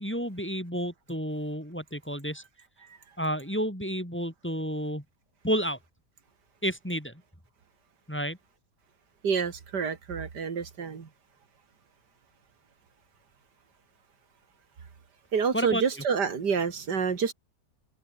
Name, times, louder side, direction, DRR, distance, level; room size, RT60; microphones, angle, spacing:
voice 1, 0.0-2.4 3.2-5.0 5.4-5.8 6.6-7.1 8.1-8.4 15.5-15.8, equal, 5° left, 6.1 m, -30 dB
voice 2, 9.2-11.1 15.3-17.3, right 6 dB, 80° right, 2.7 m, -28 dB
omnidirectional pair, 1.8 m